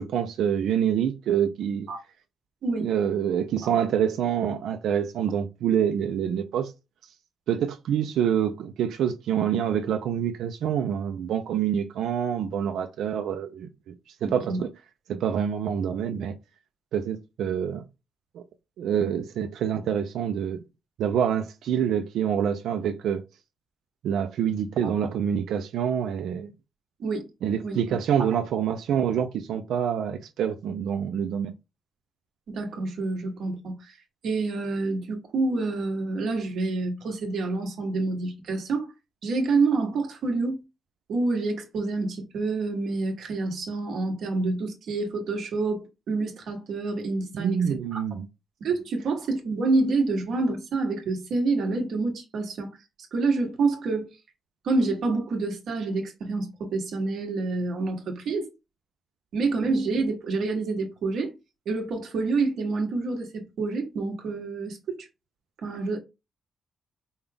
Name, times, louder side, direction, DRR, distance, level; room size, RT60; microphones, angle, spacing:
voice 1, 0.0-1.9 2.8-6.7 7.5-14.7 15.1-16.4 16.9-17.8 18.3-18.4 18.8-20.6 21.0-23.2 24.0-26.5 27.4-31.5 47.3-48.3, right 8 dB, 90° right, 0.5 m, -26 dB
voice 2, 14.2-14.6 24.8-24.9 27.0-27.2 27.6-27.8 32.5-34.0 34.2-38.9 39.2-40.6 41.1-47.6 47.9-48.0 48.6-52.7 53.1-54.1 54.6-58.5 59.3-61.3 61.6-65.1 65.6-66.0, right 3 dB, 60° right, 1.4 m, -27 dB
5.5 x 2.3 x 3.5 m
wide cardioid pair, 170°, 0 cm